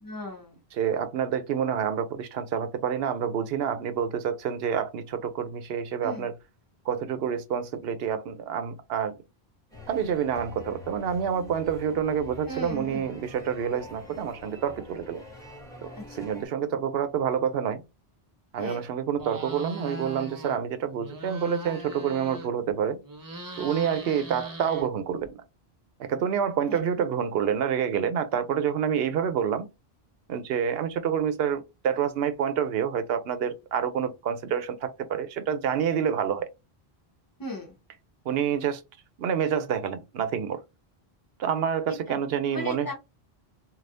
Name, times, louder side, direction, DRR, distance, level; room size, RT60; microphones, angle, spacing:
voice 1, 0.0-0.6 6.0-6.3 12.5-13.1 15.9-16.3 18.6-18.9 26.7-26.8 37.4-37.8 41.9-42.2 42.5-42.9, left 1 dB, 20° left, 1.1 m, -37 dB
voice 2, 0.8-6.3 6.9-9.1 9.9-15.2 15.8-15.9 16.2-17.8 18.5-23.0 23.6-25.4 26.0-29.7 30.3-36.5 38.3-38.8 39.2-40.6 41.4-42.9, right 8 dB, 70° right, 0.8 m, -28 dB
sound 1, 9.7-16.5, left 2 dB, 5° left, 1.3 m, -46 dB
sound 2, 19.2-20.6 20.9-22.7 23.0-25.3, right 1 dB, 25° right, 0.6 m, -40 dB
3.3 x 2.3 x 2.5 m
omnidirectional pair, 1.1 m